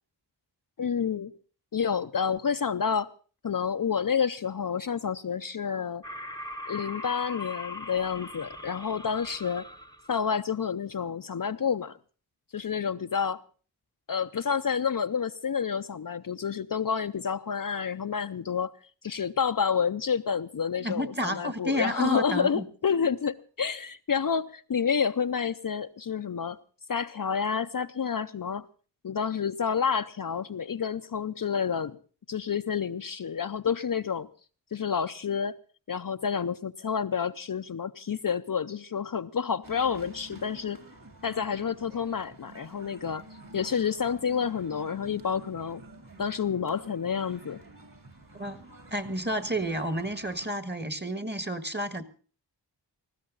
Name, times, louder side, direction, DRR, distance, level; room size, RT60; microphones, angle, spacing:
voice 1, 0.8-1.3 1.7-3.1 3.4-6.0 6.7-9.7 10.1-12.0 12.5-13.4 14.1-18.7 19.0-26.6 26.9-28.7 29.0-32.0 32.3-34.3 34.7-35.6 35.9-40.8 41.2-43.2 43.5-45.8 46.2-47.6, left 6 dB, 50° left, 0.6 m, -29 dB
sound 1, 6.0-10.2, left 2 dB, 10° left, 0.9 m, -40 dB
voice 2, 20.8-22.6 48.4-48.6 48.9-52.0, equal, 25° right, 1.6 m, -30 dB
sound 2, 39.6-50.5, right 2 dB, 50° right, 3.8 m, -50 dB
18.5 x 15.5 x 3.9 m
wide cardioid pair, 70°, 44 cm